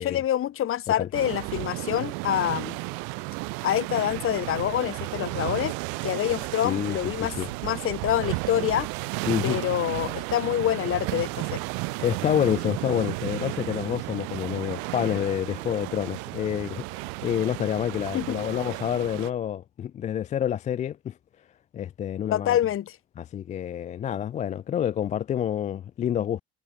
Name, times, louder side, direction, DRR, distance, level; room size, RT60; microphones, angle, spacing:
voice 1, 0.0-2.8 3.6-5.7 6.0-7.3 7.6-8.9 9.4-11.6 18.1-18.4 22.3-22.9, left 11 dB, 35° left, 0.9 m, -26 dB
sound 1, 1.1-19.3, right 37 dB, 55° right, 0.6 m, -33 dB
sound 2, 6.2-17.5, right 13 dB, 75° right, 4.8 m, -52 dB
voice 2, 6.6-7.5 9.3-9.6 12.0-21.2 21.7-22.6 23.2-26.4, left 10 dB, 20° left, 0.3 m, -28 dB
figure-of-eight pair, 55°, 35 cm